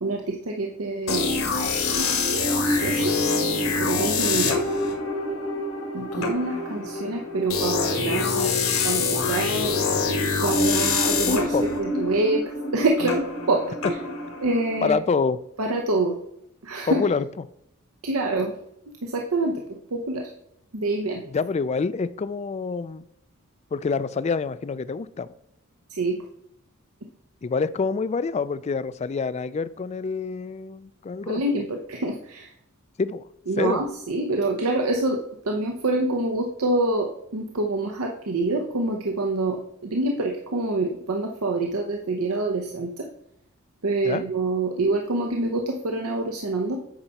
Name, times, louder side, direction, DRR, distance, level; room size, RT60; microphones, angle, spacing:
voice 1, 0.0-1.5 2.6-3.1 3.8-4.6 5.9-8.5 8.8-9.7 10.4-12.4 12.7-13.7 14.4-15.0 15.6-16.2 16.6-17.0 18.0-18.5 19.0-19.6 19.9-20.3 20.7-21.2 25.9-26.2 31.3-32.5 33.5-43.1 43.8-46.8, right 2 dB, 85° right, 2 dB, 0.8 m, -26 dB
sound 1, 1.1-14.8, left 3 dB, 75° left, 1.7 m, -25 dB
voice 2, 11.3-11.7 14.8-15.4 16.9-17.2 21.3-23.0 23.7-25.3 27.4-31.4 33.0-33.2 33.6-33.8 44.0-44.2, left 4 dB, 30° left, 16 dB, 0.3 m, -26 dB
8.8 x 5.7 x 4.1 m, 0.78 s
head